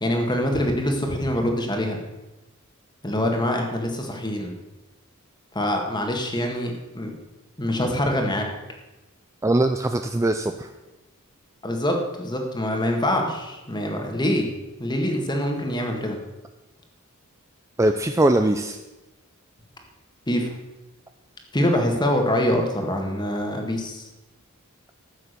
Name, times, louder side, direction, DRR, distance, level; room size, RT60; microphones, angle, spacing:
voice 1, 0.0-2.0 3.0-4.5 5.6-7.1 7.6-8.4 11.6-14.5 14.8-16.2 20.3-20.5 21.5-24.1, left 1 dB, 20° left, 2 dB, 1.8 m, -24 dB
voice 2, 9.4-10.7 17.8-18.8, right 1 dB, 15° right, 7 dB, 0.4 m, -21 dB
14.5 x 7.2 x 6.8 m, 1.0 s
head